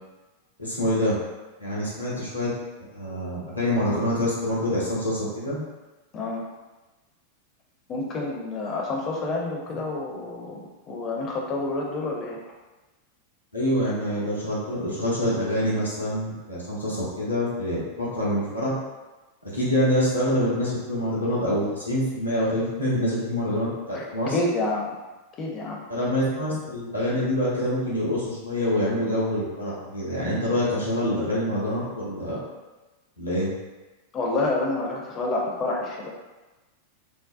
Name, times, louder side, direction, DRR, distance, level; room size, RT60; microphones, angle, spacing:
voice 1, 0.6-1.2 1.6-2.5 2.9-5.6 13.5-18.7 19.4-24.3 25.9-32.4 33.2-33.5, equal, 85° left, -8 dB, 0.8 m, -26 dB
voice 2, 6.1-6.5 7.9-10.6 10.9-12.4 23.9-24.1 24.3-24.9 25.4-25.8 34.1-36.1, left 2 dB, 30° left, -2 dB, 0.5 m, -28 dB
2.6 x 2.0 x 2.4 m, 1.2 s
figure-of-eight pair, 90°, 0 cm